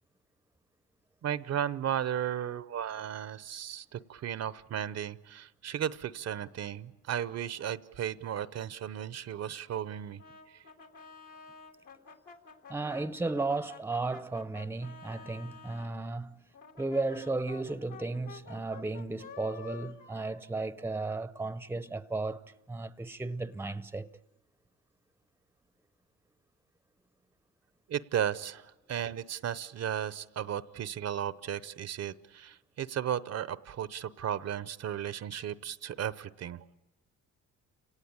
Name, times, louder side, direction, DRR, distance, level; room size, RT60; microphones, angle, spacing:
voice 1, 1.2-10.2 10.5-10.6 27.9-36.7, right 9 dB, 55° right, 0.8 m, -35 dB
Brass instrument, 10.2-15.9 16.5-21.3, left 5 dB, 70° left, 3.2 m, -50 dB
voice 2, 12.7-16.4 16.8-24.1, right 3 dB, 10° right, 0.8 m, -34 dB
29.5 x 18.0 x 8.8 m
cardioid pair, 90°, 30 cm